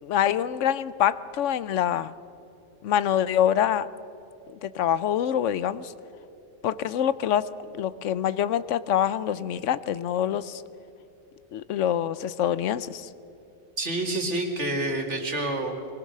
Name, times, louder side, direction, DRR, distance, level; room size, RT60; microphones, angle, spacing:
voice 1, 0.0-2.1 2.8-3.9 4.6-5.9 6.6-7.5 7.7-10.6 11.5-13.1, left 10 dB, 90° left, 16 dB, 1.0 m, -25 dB
voice 2, 13.8-15.9, right 2 dB, 75° right, 2 dB, 2.6 m, -28 dB
22.0 x 19.0 x 6.6 m, 2.9 s
omnidirectional pair, 1.2 m